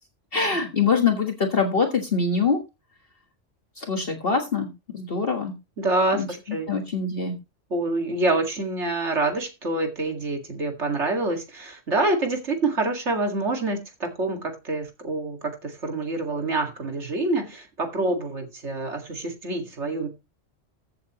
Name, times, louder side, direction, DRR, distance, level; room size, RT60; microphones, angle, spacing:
voice 1, 0.3-2.6 3.8-5.5 6.2-6.3 6.7-7.4, left 5 dB, 50° left, 3 dB, 1.8 m, -24 dB
voice 2, 5.8-6.7 7.7-20.1, right 2 dB, 65° right, 4 dB, 2.4 m, -26 dB
15.0 x 7.8 x 3.0 m, 0.26 s
omnidirectional pair, 1.3 m